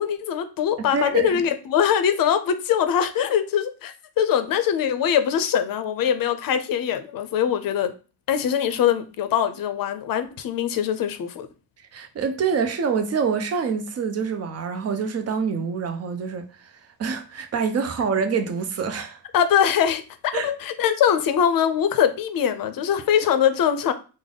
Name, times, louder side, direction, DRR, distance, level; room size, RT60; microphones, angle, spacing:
voice 1, 0.0-7.9 8.3-11.5 19.3-20.0 20.4-23.9, left 9 dB, 55° left, 0.5 m, -22 dB
voice 2, 0.9-1.4 11.8-19.2 20.3-20.5, right 6 dB, 40° right, 0.6 m, -26 dB
3.4 x 2.0 x 3.8 m
cardioid pair, 110°, 41 cm